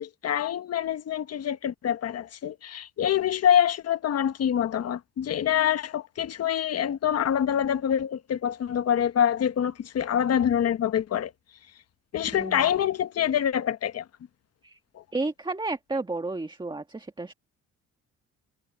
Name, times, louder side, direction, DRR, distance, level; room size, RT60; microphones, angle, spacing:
voice 1, 0.0-11.3 12.1-14.0 14.9-15.0, left 9 dB, 55° left, 1.2 m, -26 dB
voice 2, 12.3-12.7 14.6-14.8 15.1-17.3, right 3 dB, 15° right, 1.8 m, -32 dB
cardioid pair, 90°, 30 cm